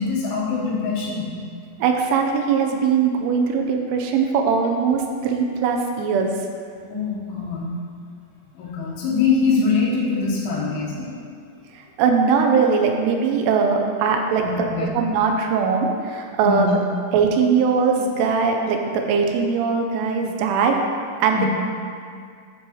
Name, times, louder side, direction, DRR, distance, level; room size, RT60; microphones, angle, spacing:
voice 1, 0.0-1.4 6.9-7.7 8.5-11.1 14.4-14.9 16.4-16.7 21.3-21.5, left 4 dB, 85° left, -5 dB, 4.0 m, -23 dB
voice 2, 1.8-6.3 11.8-14.7 14.9-16.7 17.1-20.8 21.2-21.5, right 5 dB, 80° right, 2 dB, 3.1 m, -20 dB
10.0 x 7.0 x 3.1 m, 2.2 s
omnidirectional pair, 5.6 m